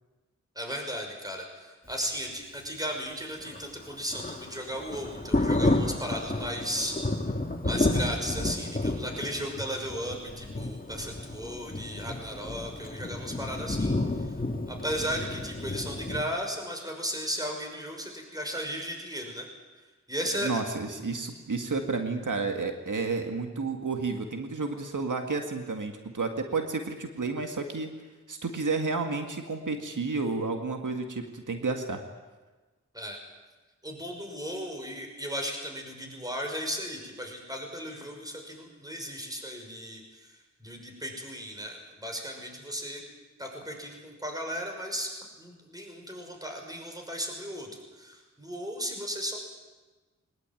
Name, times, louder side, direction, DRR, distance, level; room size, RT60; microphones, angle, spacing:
voice 1, 0.5-7.3 7.6-14.4 14.7-19.5 20.1-20.5 32.9-33.2 33.8-43.0 43.4-45.1 45.4-49.4, equal, 10° right, 2 dB, 6.1 m, -36 dB
Thunder, 3.4-16.2, left 2 dB, 30° left, 2.3 m, -31 dB
voice 2, 20.3-27.9 28.3-32.0, right 4 dB, 85° right, 4 dB, 2.0 m, -31 dB
22.5 x 20.0 x 9.1 m, 1.3 s
wide cardioid pair, 60°, 30 cm